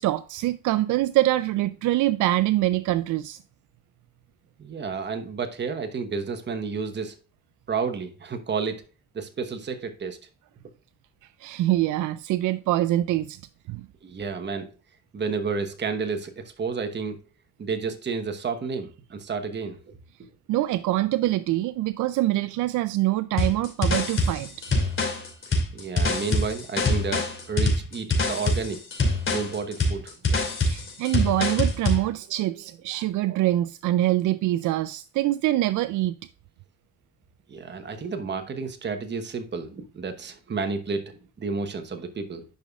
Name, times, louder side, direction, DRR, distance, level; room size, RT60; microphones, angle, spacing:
voice 1, 0.0-3.4 11.4-13.4 13.7-13.8 20.5-24.5 30.7-36.1, right 15 dB, 80° right, 0.4 m, -24 dB
voice 2, 4.6-7.2 7.7-8.8 9.1-10.2 14.0-14.7 15.1-17.2 17.6-19.8 25.5-28.9 29.3-30.1 37.5-42.4, right 5 dB, 35° right, 1.1 m, -31 dB
sound 1, 23.4-32.1, left 2 dB, 40° left, 2.7 m, -24 dB
10.5 x 5.5 x 2.4 m
cardioid pair, 90°, 30 cm